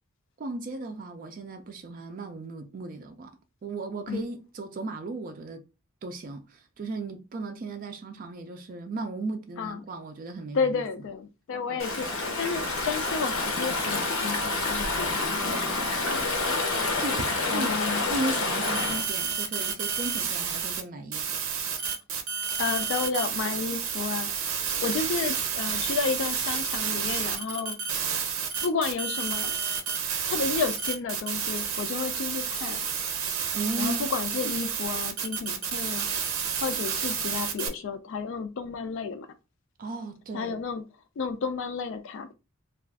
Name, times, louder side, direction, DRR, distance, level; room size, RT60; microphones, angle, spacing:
voice 1, 0.4-5.6 6.0-10.8 11.7-11.8 16.2-17.7 18.1-21.3 33.5-34.1 39.8-40.6, right 2 dB, 40° right, 0.3 m, -36 dB
voice 2, 10.5-12.1 12.4-15.7 16.0-16.4 17.5-18.0 18.9-19.0 22.6-24.3 24.8-27.8 28.6-29.5 30.3-32.8 33.8-36.0 36.6-39.3 40.3-40.8 41.2-42.3, left 5 dB, 65° left, 0.3 m, -31 dB
Stream / Ocean, 11.8-19.1, left 2 dB, 85° left, 0.8 m, -28 dB
sound 1, 18.6-20.8 21.1-37.7, right 7 dB, 80° right, 0.6 m, -30 dB
2.4 x 2.3 x 3.3 m
head